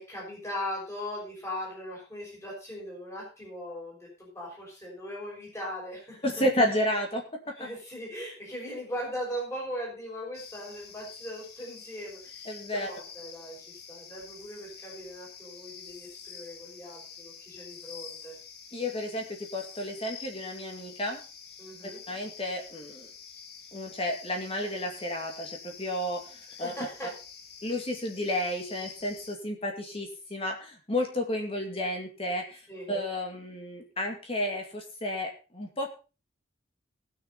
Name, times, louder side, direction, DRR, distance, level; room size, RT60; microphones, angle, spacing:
voice 1, 0.0-6.4 7.6-18.3 21.6-22.0 26.6-27.1 32.7-32.9, equal, 15° left, -4 dB, 5.9 m, -39 dB
voice 2, 6.2-7.2 7.6-7.7 12.5-12.9 18.7-21.2 21.8-23.1 23.7-26.7 27.6-32.6 32.9-35.9, left 1 dB, 30° left, 2 dB, 2.2 m, -32 dB
sound 1, 10.3-29.4, left 6 dB, 55° left, 1.6 m, -47 dB
19.5 x 6.7 x 4.1 m, 0.33 s
head